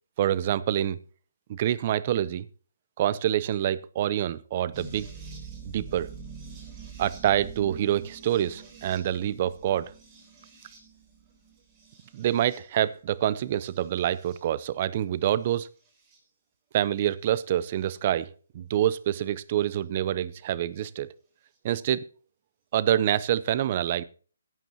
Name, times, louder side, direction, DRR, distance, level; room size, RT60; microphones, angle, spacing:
voice 1, 0.2-1.0 1.5-2.5 3.0-5.1 5.7-6.1 7.0-9.9 12.1-15.7 16.7-18.3 18.5-21.1 21.6-22.0 22.7-24.0, right 11 dB, 35° right, 0.7 m, -26 dB
sound 1, 4.7-12.9 13.6-14.4 15.5-16.2 17.9-18.0 19.7-19.8, right 5 dB, 20° right, 3.7 m, -46 dB
17.0 x 9.0 x 2.9 m
hypercardioid pair, 155°, 0 cm